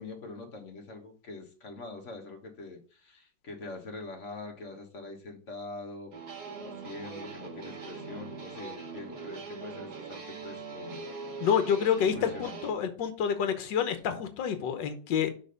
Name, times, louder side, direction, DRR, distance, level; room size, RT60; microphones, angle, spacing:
voice 1, 0.0-6.1 6.6-11.1 12.1-12.6, left 3 dB, 45° left, 3 dB, 1.6 m, -44 dB
sound 1, 6.1-12.7, right 4 dB, 55° right, 2.2 m, -42 dB
voice 2, 11.4-15.3, left 8 dB, 75° left, 8 dB, 1.6 m, -28 dB
6.3 x 4.3 x 5.1 m, 0.39 s
omnidirectional pair, 2.0 m